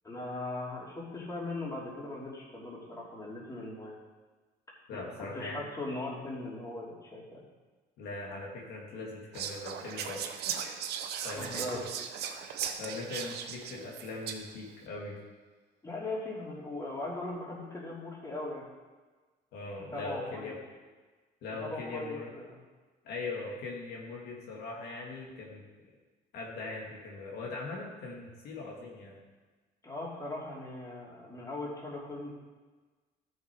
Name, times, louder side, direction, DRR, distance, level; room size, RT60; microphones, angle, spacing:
voice 1, 0.0-4.0 4.9-7.4 11.3-11.8 15.8-18.7 19.8-20.5 21.5-22.6 29.8-32.3, left 2 dB, 20° left, -5 dB, 3.1 m, -39 dB
voice 2, 4.9-5.6 8.0-10.3 11.2-11.9 12.8-15.2 19.5-20.6 21.4-22.3 23.0-25.7 26.3-29.2, left 3 dB, 75° left, -2 dB, 2.2 m, -40 dB
Whispering, 9.3-14.7, right 8 dB, 75° right, 0.9 m, -38 dB
13.0 x 6.5 x 4.7 m, 1.3 s
cardioid pair, 110°, 17 cm